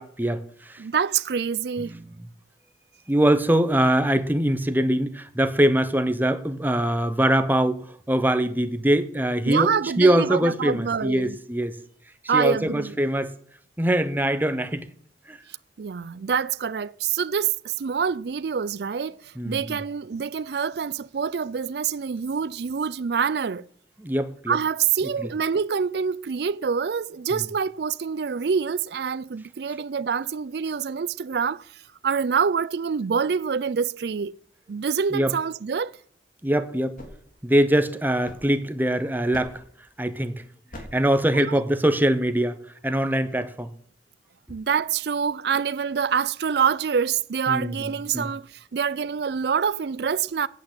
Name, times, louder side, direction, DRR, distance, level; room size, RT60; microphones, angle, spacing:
voice 1, 0.0-0.8 1.9-2.0 3.1-11.8 12.3-13.3 13.8-14.9 15.3-15.4 19.4-19.8 24.0-24.6 25.2-25.3 27.3-27.5 35.1-35.3 36.4-37.0 37.4-39.6 40.0-40.4 40.9-42.6 42.8-43.7 47.5-48.3, right 1 dB, 10° right, 0.7 m, -23 dB
voice 2, 0.8-1.9 9.5-11.4 12.3-12.9 15.8-23.7 24.5-31.7 32.0-34.3 34.7-35.9 41.3-41.6 44.5-50.5, right 6 dB, 65° right, 0.4 m, -26 dB
sound 1, 37.0-38.9 39.3-39.8 40.7-41.2, left 1 dB, 50° left, 3.0 m, -44 dB
8.7 x 8.3 x 8.2 m
head